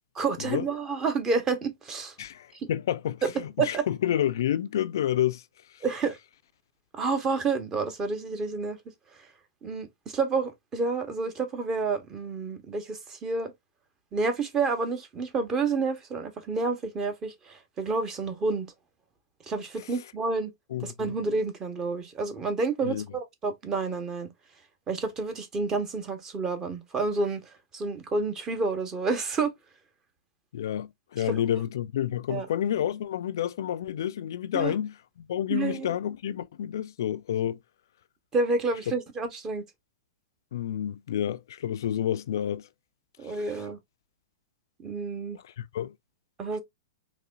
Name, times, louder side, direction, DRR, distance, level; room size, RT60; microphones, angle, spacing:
voice 1, 0.2-2.1 3.6-3.8 5.8-6.2 6.9-8.8 9.6-13.5 14.1-18.7 19.5-20.5 20.8-24.3 24.9-27.4 27.7-29.5 31.3-31.4 32.3-32.5 34.5-34.7 35.5-35.9 38.3-39.6 43.2-43.8 44.8-45.4 46.4-46.6, right 4 dB, 25° right, 1.1 m, -29 dB
voice 2, 2.2-5.4 5.7-5.8 19.8-20.0 20.7-21.1 22.8-23.1 30.5-37.6 40.5-42.7 43.2-43.6 45.3-45.9, left 10 dB, 70° left, 0.3 m, -30 dB
4.0 x 3.0 x 2.5 m
hypercardioid pair, 120°, 2 cm